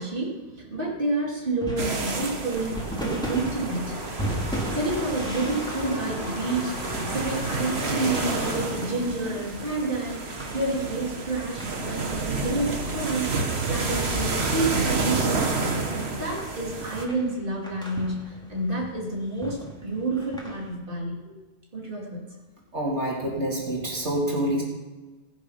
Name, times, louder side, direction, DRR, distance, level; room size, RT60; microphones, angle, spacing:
voice 1, 0.0-3.9 4.7-21.3 21.7-22.2, right 2 dB, 50° right, -3 dB, 3.1 m, -29 dB
sound 1, 1.3-9.7, left 1 dB, 50° left, 2.7 m, -38 dB
sound 2, 1.6-20.7, right 1 dB, 5° left, 2.7 m, -38 dB
sound 3, 1.8-17.1, right 3 dB, 70° right, 1.7 m, -30 dB
voice 2, 22.7-24.6, right 1 dB, 90° right, -3 dB, 3.5 m, -27 dB
21.5 x 7.2 x 5.8 m, 1.2 s
omnidirectional pair, 1.1 m